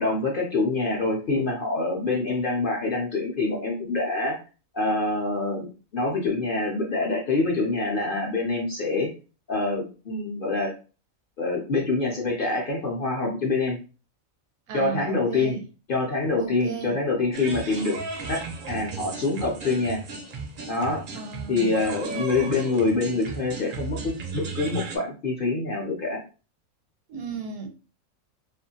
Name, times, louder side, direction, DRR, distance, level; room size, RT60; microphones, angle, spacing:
voice 1, 0.0-4.4 4.7-9.1 9.5-10.7 11.4-13.8 14.7-15.6 15.9-18.0 18.3-20.0 20.7-21.0 21.5-26.2, left 3 dB, 50° left, 0.7 m, -26 dB
voice 2, 14.7-15.6 16.4-16.9 21.1-22.2 27.1-27.7, right 5 dB, 80° right, 1.0 m, -35 dB
sound 1, 17.3-25.0, right 3 dB, 55° right, 0.5 m, -35 dB
2.6 x 2.5 x 2.7 m
omnidirectional pair, 1.4 m